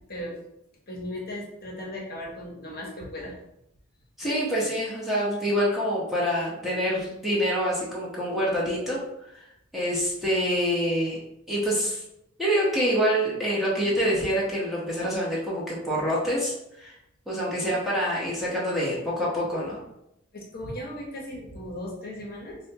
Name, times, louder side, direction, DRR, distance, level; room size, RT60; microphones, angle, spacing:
voice 1, 0.1-0.4 0.9-3.4 20.3-22.6, left 1 dB, 45° left, -2 dB, 0.8 m, -37 dB
voice 2, 4.2-9.0 9.3-9.5 9.7-11.2 11.5-12.0 12.4-17.0 17.3-19.8, equal, ahead, -7 dB, 0.7 m, -26 dB
4.1 x 2.2 x 2.7 m, 0.82 s
head